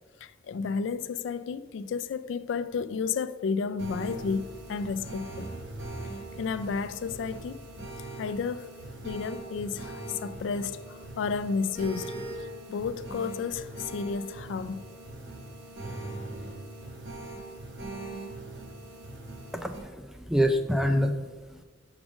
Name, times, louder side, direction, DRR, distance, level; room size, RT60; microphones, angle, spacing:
voice 1, 0.2-5.5 6.4-7.6 8.2-8.7 9.0-12.1 12.4-14.8, left 5 dB, 70° left, 0.3 m, -32 dB
sound 1, 3.8-19.8, right 2 dB, 65° right, 1.6 m, -41 dB
voice 2, 19.5-21.6, equal, ahead, 0.4 m, -27 dB
6.2 x 4.9 x 5.0 m
head